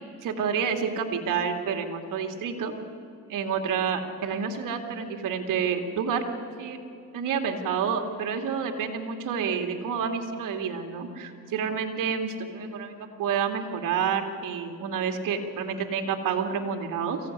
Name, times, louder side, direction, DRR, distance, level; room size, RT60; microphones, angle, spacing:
voice 1, 0.2-2.7 3.3-6.2 6.6-6.8 7.1-17.2, right 6 dB, 75° right, 5 dB, 2.6 m, -29 dB
23.0 x 16.0 x 9.9 m, 2.4 s
supercardioid pair, 70°, 33 cm